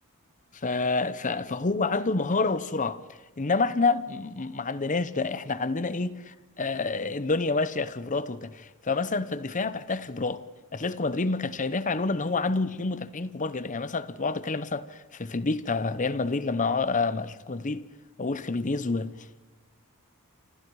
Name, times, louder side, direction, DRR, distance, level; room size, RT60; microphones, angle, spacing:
voice 1, 0.6-3.0 3.4-10.4 10.7-17.8 18.2-19.1, left 3 dB, 35° left, 0.9 m, -28 dB
28.5 x 26.0 x 4.8 m
head